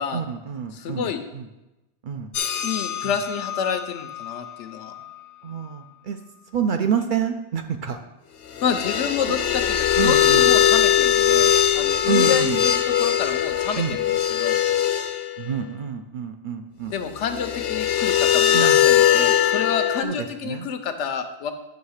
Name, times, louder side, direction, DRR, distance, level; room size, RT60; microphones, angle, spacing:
voice 1, 0.1-1.5 2.0-2.3 5.4-6.2 6.5-8.0 10.0-10.5 12.0-12.6 13.8-14.0 15.4-17.0 18.5-18.9 20.0-20.2 20.4-20.7, right 7 dB, 60° right, 6 dB, 0.6 m, -28 dB
voice 2, 0.7-1.2 2.6-4.9 8.6-14.0 14.3-14.6 16.9-21.5, left 7 dB, 90° left, 8 dB, 1.0 m, -28 dB
sound 1, 2.3-4.5 4.9-5.0 8.6-15.3 17.3-20.0, left 10 dB, 65° left, 0.7 m, -20 dB
9.2 x 3.2 x 6.4 m, 0.99 s
omnidirectional pair, 1.2 m